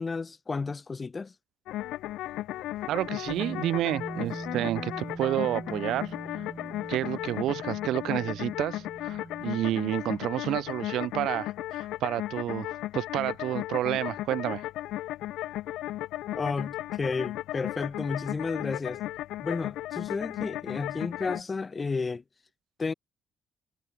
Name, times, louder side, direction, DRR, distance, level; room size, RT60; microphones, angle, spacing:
voice 1, 0.0-1.3 16.3-19.0 19.4-22.2 22.8-22.9, left 4 dB, 30° left, 0.7 m, -32 dB
sound 1, 1.7-21.4, left 15 dB, 90° left, 0.5 m, -35 dB
sound 2, 2.6-7.6, right 9 dB, 60° right, 3.8 m, -59 dB
voice 2, 2.9-6.1 6.9-14.6, right 13 dB, 85° right, 0.4 m, -30 dB
Bass guitar, 3.3-9.5, right 3 dB, 20° right, 0.7 m, -41 dB
cardioid pair, 90°, 0 cm